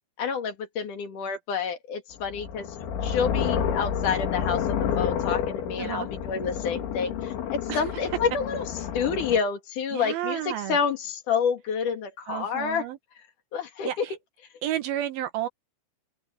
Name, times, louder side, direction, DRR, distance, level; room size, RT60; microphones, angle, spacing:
voice 1, 0.2-2.7 3.0-12.9 13.5-14.1, left 6 dB, 50° left, 3.4 m, -29 dB
sound 1, 2.2-9.4, left 8 dB, 75° left, 5.0 m, -29 dB
voice 2, 9.9-10.8 12.3-13.0 13.8-14.1 14.6-15.5, right 12 dB, 65° right, 2.6 m, -31 dB
open air
omnidirectional pair, 5.4 m